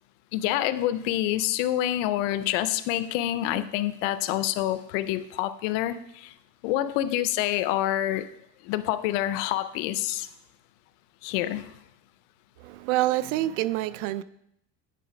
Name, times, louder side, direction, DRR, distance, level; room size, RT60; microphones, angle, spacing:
voice 1, 0.3-6.3 6.6-8.3 8.6-10.3 11.2-11.7, left 13 dB, 90° left, 14 dB, 0.6 m, -27 dB
voice 2, 12.6-14.2, right 15 dB, 90° right, 17 dB, 0.5 m, -27 dB
9.2 x 3.9 x 5.1 m, 0.77 s
cardioid pair, 155°, 36 cm